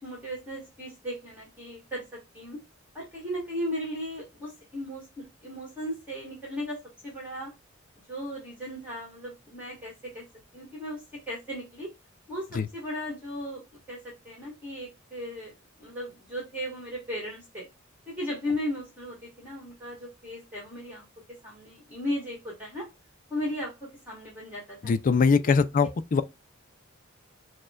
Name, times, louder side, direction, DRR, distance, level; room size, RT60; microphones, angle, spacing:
voice 1, 0.0-2.6 2.9-5.0 5.4-6.8 7.0-7.5 8.1-10.3 10.5-11.9 12.3-13.6 13.9-15.5 15.8-17.7 18.1-21.0 21.4-22.9 23.3-24.9, equal, 10° right, 1.7 m, -36 dB
voice 2, 24.8-26.2, left 5 dB, 40° left, 0.4 m, -22 dB
6.4 x 2.2 x 2.3 m
head